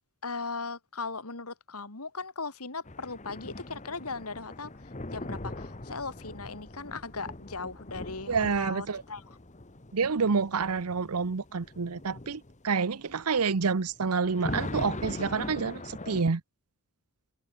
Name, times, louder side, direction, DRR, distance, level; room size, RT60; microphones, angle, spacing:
voice 1, 0.2-4.7 5.1-9.2, left 4 dB, 80° left, 3.0 m, -38 dB
sound 1, 2.9-16.2, left 2 dB, 30° left, 1.5 m, -41 dB
voice 2, 8.3-9.0 9.9-16.4, right 5 dB, 85° right, 0.8 m, -28 dB
head